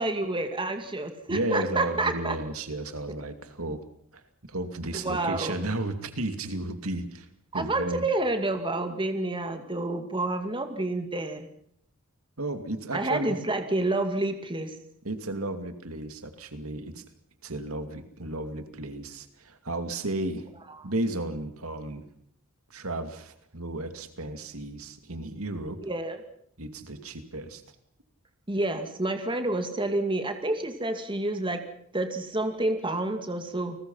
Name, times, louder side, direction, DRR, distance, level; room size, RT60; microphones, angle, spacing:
voice 1, 0.0-2.4 5.0-5.6 7.5-11.5 12.9-14.7 20.8-20.9 25.8-26.2 28.5-31.6 31.9-33.8, right 2 dB, 25° right, 7 dB, 2.3 m, -29 dB
voice 2, 1.3-3.8 4.1-4.2 4.5-7.3 7.5-8.0 12.4-13.4 15.0-17.0 17.4-20.5 20.8-22.0 22.7-25.8 26.6-27.6, right 2 dB, 75° right, 8 dB, 2.6 m, -33 dB
30.0 x 20.0 x 5.7 m, 0.68 s
head